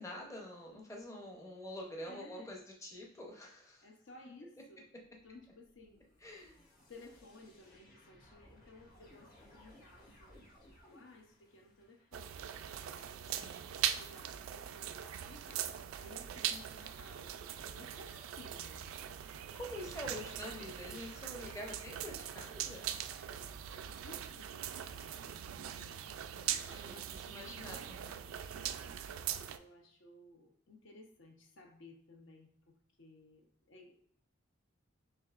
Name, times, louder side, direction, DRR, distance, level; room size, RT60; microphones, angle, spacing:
voice 1, 0.0-3.9 6.2-6.6 13.3-13.6 19.5-23.0 26.7-28.3, left 1 dB, 15° left, 0 dB, 0.7 m, -47 dB
voice 2, 2.1-2.6 3.8-4.9 5.2-6.0 6.9-13.5 13.9-18.8 19.8-20.3 23.1-27.4 29.2-34.0, left 2 dB, 60° left, 3 dB, 0.7 m, -58 dB
sound 1, 5.0-12.1, left 1 dB, 45° left, 1.4 m, -62 dB
sound 2, 12.1-29.6, right 10 dB, 80° right, 0.3 m, -41 dB
6.5 x 2.8 x 2.4 m, 0.63 s
head